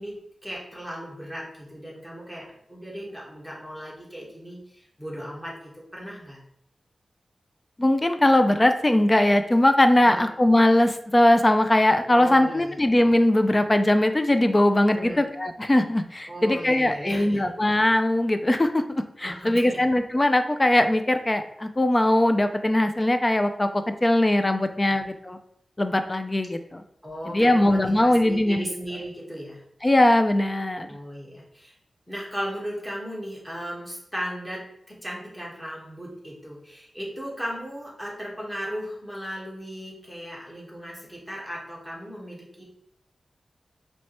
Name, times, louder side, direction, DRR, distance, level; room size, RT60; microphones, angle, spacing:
voice 1, 0.0-6.4 10.0-10.3 12.1-12.8 14.9-15.3 16.3-17.5 19.2-19.9 24.9-25.0 27.0-29.6 30.9-31.7 32.1-42.6, equal, 5° left, -4 dB, 1.3 m, -36 dB
voice 2, 7.8-25.4 25.8-26.8 27.3-28.7 29.8-30.9, left 1 dB, 20° left, 8 dB, 0.4 m, -20 dB
4.5 x 3.1 x 2.9 m, 0.73 s
wide cardioid pair, 110°, 0 cm